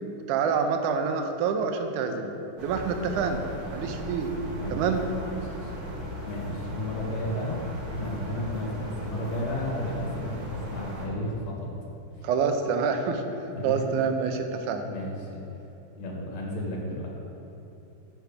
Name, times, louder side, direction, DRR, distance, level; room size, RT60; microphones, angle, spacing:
voice 1, 0.3-3.4 3.7-4.3 4.7-5.0 12.2-13.2 13.6-14.9, right 6 dB, 80° right, 5 dB, 2.1 m, -27 dB
sound 1, 2.6-11.1, right 1 dB, 55° right, 1.1 m, -37 dB
voice 2, 4.5-4.8 5.4-5.7 6.2-11.7 12.1-12.3 13.5-14.0 14.8-15.4 16.0-17.1, left 1 dB, 60° left, -2 dB, 2.5 m, -33 dB
8.0 x 6.6 x 5.0 m, 2.9 s
omnidirectional pair, 3.8 m